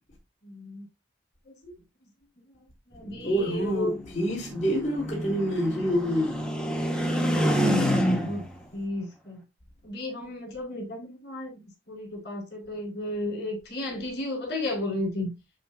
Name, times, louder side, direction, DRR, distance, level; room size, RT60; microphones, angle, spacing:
voice 1, 0.4-0.9 1.5-1.7 2.9-3.9 8.0-8.4 8.7-9.4 9.8-11.6 11.9-15.3, left 1 dB, 60° left, 5.8 m, -33 dB
sound 1, 3.1-8.5, equal, 5° left, 1.7 m, -28 dB
voice 2, 3.2-6.5, equal, 40° left, 4.4 m, -27 dB
12.0 x 4.9 x 2.9 m
head